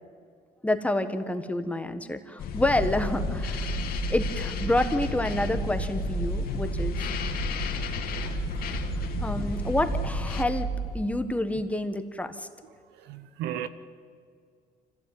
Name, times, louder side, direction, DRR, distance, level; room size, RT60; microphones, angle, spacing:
voice 1, 0.6-3.7 4.1-7.0 9.2-12.5, left 1 dB, 10° left, 1.5 m, -28 dB
sound 1, 2.4-10.4, left 8 dB, 60° left, 2.3 m, -33 dB
sound 2, 2.6-11.0, right 5 dB, 45° right, 5.0 m, -33 dB
voice 2, 12.9-13.7, right 11 dB, 90° right, 1.1 m, -36 dB
25.0 x 15.5 x 9.5 m
cardioid pair, 110°, 17 cm